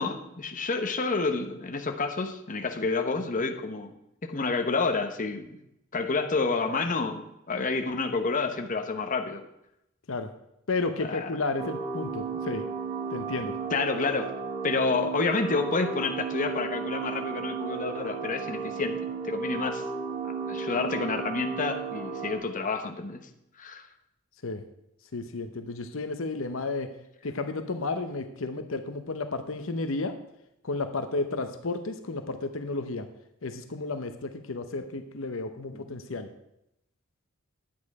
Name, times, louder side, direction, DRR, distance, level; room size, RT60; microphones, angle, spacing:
voice 1, 0.0-3.9 4.2-5.6 5.9-9.4 11.1-11.3 13.7-14.3 14.6-19.8 20.5-23.3 23.6-23.8 35.7-36.0, left 4 dB, 40° left, 5 dB, 1.0 m, -29 dB
voice 2, 10.7-12.6 13.1-13.6 24.4-24.6 25.1-26.9 27.2-30.1 30.6-33.1 33.4-36.3, left 3 dB, 70° left, 7 dB, 0.9 m, -32 dB
sound 1, 11.6-22.4, right 5 dB, 30° right, 3.9 m, -34 dB
10.5 x 8.8 x 4.8 m, 0.82 s
head